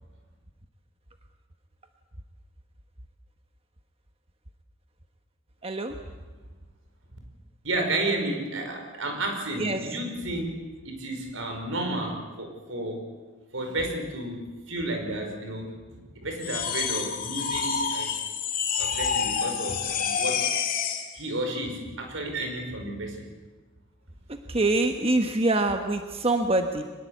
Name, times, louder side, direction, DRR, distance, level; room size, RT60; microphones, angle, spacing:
voice 1, 5.6-6.0 9.6-9.8 24.5-26.8, right 2 dB, 30° right, 6 dB, 1.3 m, -25 dB
voice 2, 7.6-10.5 10.8-13.0 13.5-18.1 18.8-20.5 21.1-23.3, right 1 dB, 80° right, 4 dB, 5.6 m, -32 dB
sound 1, 16.4-21.1, left 6 dB, 45° left, 2.5 m, -28 dB
23.5 x 21.0 x 8.5 m, 1.3 s
head